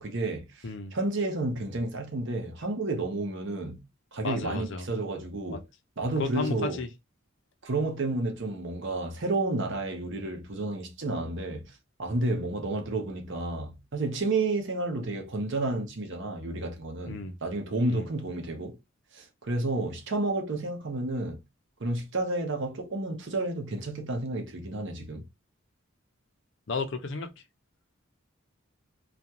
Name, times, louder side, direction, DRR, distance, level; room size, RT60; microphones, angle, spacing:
voice 1, 0.0-3.8 4.1-5.6 6.0-6.8 7.6-18.8 19.1-21.4 21.8-25.2, right 2 dB, 60° right, 0.7 m, -31 dB
voice 2, 4.2-4.9 5.5-5.6 6.2-6.9 17.0-17.3 17.9-18.1 26.7-27.3, left 3 dB, 60° left, 0.5 m, -33 dB
2.5 x 2.2 x 2.8 m
head